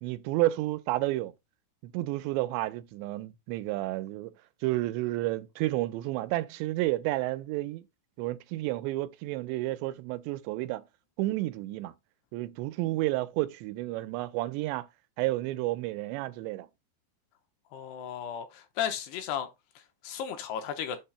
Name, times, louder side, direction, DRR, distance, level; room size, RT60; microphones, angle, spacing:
voice 1, 0.0-1.3 1.8-4.3 4.6-7.8 8.2-10.8 11.2-11.9 12.3-14.9 15.2-16.7, right 17 dB, 85° right, 2.8 m, -31 dB
voice 2, 17.7-19.5 20.0-21.0, left 9 dB, 80° left, 2.8 m, -34 dB
7.3 x 2.8 x 5.6 m
omnidirectional pair, 5.0 m